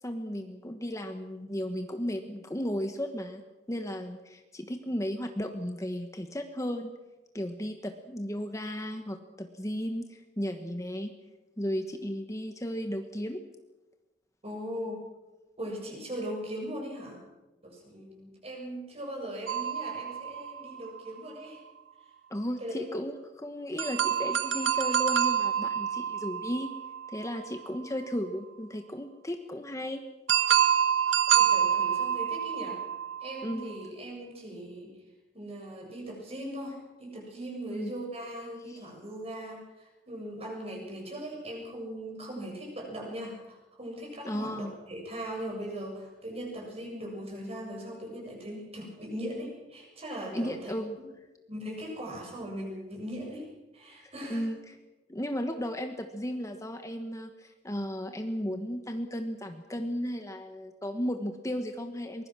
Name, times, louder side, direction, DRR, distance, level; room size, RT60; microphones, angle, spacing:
voice 1, 0.0-3.4 3.7-6.9 7.3-11.1 11.6-13.4 22.3-26.7 27.1-30.0 33.4-33.7 37.7-37.9 38.7-38.8 44.2-44.7 50.3-51.0 54.0-54.7 55.1-62.3, equal, 20° left, 6 dB, 1.3 m, -35 dB
voice 2, 14.4-15.1 15.6-17.2 17.6-21.6 22.6-23.0 31.3-32.8 33.2-35.0 35.3-50.7 51.5-53.5 53.7-54.4, equal, 35° right, 0 dB, 7.6 m, -39 dB
sound 1, 19.5-21.2 23.8-27.7 30.3-33.8, right 9 dB, 90° right, 1.4 m, -27 dB
24.0 x 21.0 x 6.2 m, 1.1 s
head